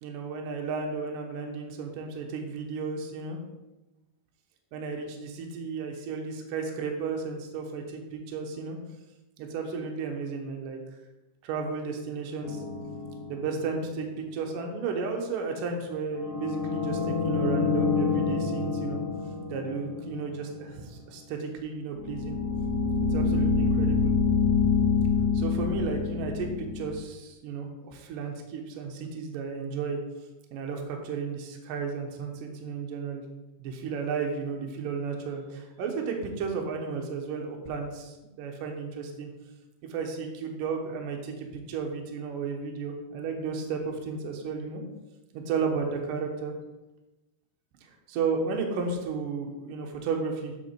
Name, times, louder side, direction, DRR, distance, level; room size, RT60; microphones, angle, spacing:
voice 1, 0.0-3.4 4.7-8.8 9.4-10.8 11.4-12.6 13.3-19.0 19.5-22.4 23.1-24.1 25.3-30.0 30.5-33.2 33.6-39.3 39.9-44.8 45.3-46.5 47.8-50.5, right 5 dB, 70° right, 2 dB, 2.3 m, -33 dB
sound 1, 12.4-13.9 16.1-20.6 22.0-27.0, left 5 dB, 60° left, 1.7 m, -27 dB
7.2 x 5.8 x 4.4 m, 1.0 s
omnidirectional pair, 4.5 m